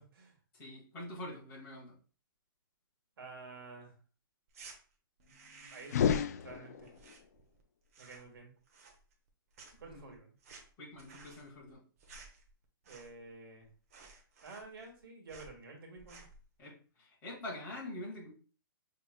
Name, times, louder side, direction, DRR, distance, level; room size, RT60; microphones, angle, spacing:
voice 1, 0.0-0.3 3.2-3.9 5.2-6.9 8.0-8.5 9.8-10.3 12.9-13.7 14.4-16.2, right 3 dB, 70° right, 1 dB, 1.9 m, -51 dB
voice 2, 0.5-1.9 9.8-10.1 10.8-11.8 16.6-18.3, left 1 dB, 15° left, -5 dB, 1.9 m, -45 dB
sound 1, 4.5-4.8 5.2-6.2 6.4-7.6 7.9-8.4 8.7-9.3 9.5-13.3 13.6-13.7 13.9-15.0 15.3-15.6 16.0-16.4, right 4 dB, 40° right, 1.0 m, -55 dB
sound 2, 5.8-7.1, left 8 dB, 45° left, 0.3 m, -31 dB
5.7 x 3.5 x 2.3 m, 0.39 s
hypercardioid pair, 170°, 12 cm